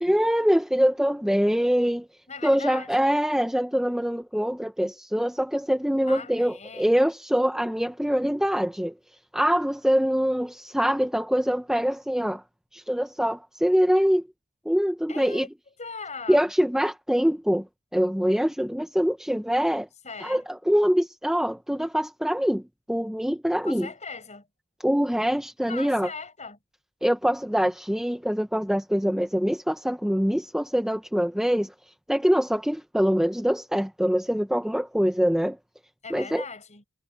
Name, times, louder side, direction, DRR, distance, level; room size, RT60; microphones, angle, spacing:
voice 1, 0.0-2.1 2.4-8.9 9.3-12.4 12.7-14.2 14.7-15.5 16.3-17.7 17.9-19.9 20.2-22.6 22.9-23.9 24.8-26.1 27.0-31.7 32.1-35.6 36.1-36.4, equal, ahead, 0.8 m, -24 dB
voice 2, 2.3-3.1 6.1-7.0 15.1-15.5 15.8-16.5 20.0-20.4 23.6-24.5 25.7-26.6 36.0-36.8, left 4 dB, 30° left, 6.2 m, -39 dB
head